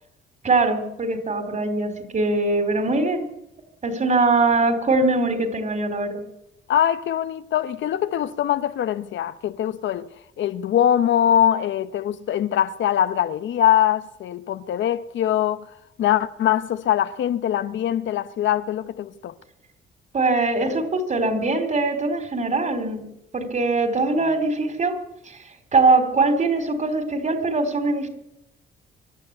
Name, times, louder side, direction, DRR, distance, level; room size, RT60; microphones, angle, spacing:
voice 1, 0.4-3.3 3.8-6.2 20.1-23.0 23.3-25.0 25.3-25.4 25.7-28.1, right 3 dB, 40° right, 4.7 m, -22 dB
voice 2, 6.7-10.1 10.4-15.7 16.0-19.3, left 10 dB, 70° left, 1.1 m, -22 dB
24.5 x 12.5 x 10.0 m
cardioid pair, 90°, 20 cm